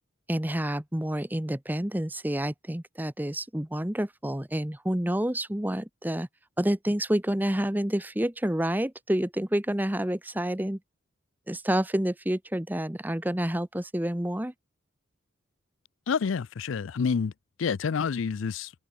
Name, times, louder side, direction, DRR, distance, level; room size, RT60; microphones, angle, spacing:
voice 1, 0.3-6.3 6.6-10.8 11.5-14.5, right 1 dB, 10° right, 0.8 m, -28 dB
voice 2, 16.1-17.3 17.6-18.7, left 6 dB, 70° left, 0.4 m, -28 dB
open air
head